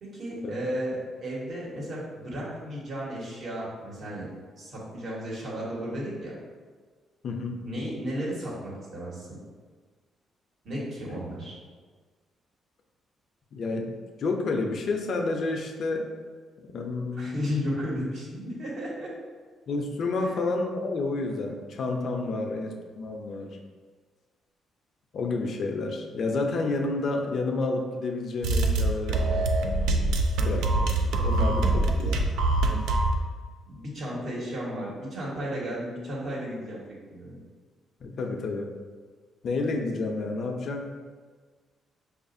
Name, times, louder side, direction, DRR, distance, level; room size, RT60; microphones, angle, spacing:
voice 1, 0.0-4.3 4.6-6.4 7.6-9.3 10.6-11.5 17.2-19.1 20.1-20.3 33.7-37.4, equal, 60° right, -5 dB, 1.3 m, -34 dB
voice 2, 7.2-7.6 13.5-13.9 14.2-16.1 16.6-17.4 19.7-23.6 25.1-29.2 30.4-32.2 38.0-38.7 39.4-40.9, left 3 dB, 60° left, 3 dB, 0.5 m, -30 dB
sound 1, 28.4-33.2, right 2 dB, 85° right, 0.3 m, -24 dB
5.0 x 2.4 x 2.6 m, 1.5 s
cardioid pair, 90°, 0 cm